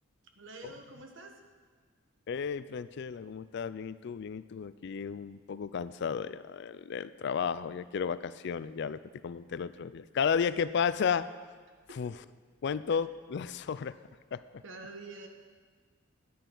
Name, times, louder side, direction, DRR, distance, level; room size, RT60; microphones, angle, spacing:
voice 1, 0.3-1.3 11.9-12.0 14.6-15.3, right 3 dB, 65° right, 4 dB, 1.3 m, -46 dB
voice 2, 2.3-11.3 11.9-12.1 12.6-13.9 14.3-14.6, left 6 dB, 55° left, 15 dB, 0.4 m, -33 dB
13.5 x 10.5 x 3.9 m, 1.5 s
head